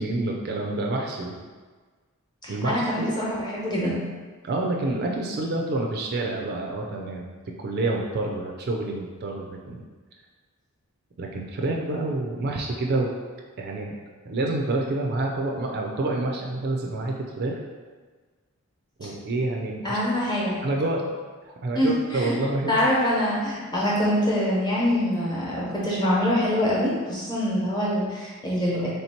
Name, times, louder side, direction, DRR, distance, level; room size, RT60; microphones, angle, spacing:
voice 1, 0.0-1.4 2.5-3.1 4.4-7.3 7.6-9.8 11.2-13.1 13.6-14.0 14.3-17.6 19.0-20.0 20.6-21.0 21.5-22.8, right 2 dB, 45° right, 0 dB, 0.4 m, -28 dB
voice 2, 2.4-4.0 19.8-20.6 21.7-22.3 22.7-28.9, equal, 20° left, -6 dB, 1.0 m, -24 dB
3.3 x 2.8 x 4.3 m, 1.4 s
head